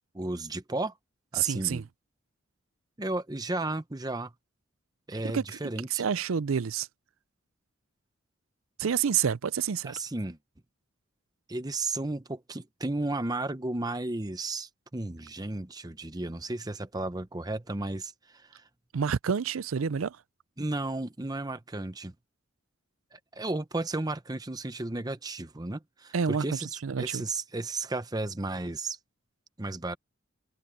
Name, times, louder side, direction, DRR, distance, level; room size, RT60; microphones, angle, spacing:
voice 1, 0.1-0.9 1.3-1.8 3.0-4.3 5.1-6.0 9.8-10.4 11.5-18.7 20.6-22.1 23.1-29.0 29.6-30.0, right 2 dB, 20° right, 0.8 m, -34 dB
voice 2, 1.4-1.8 5.3-5.4 5.9-6.9 8.8-9.9 18.9-20.2 26.1-26.4 26.8-27.2, right 7 dB, 90° right, 0.5 m, -28 dB
head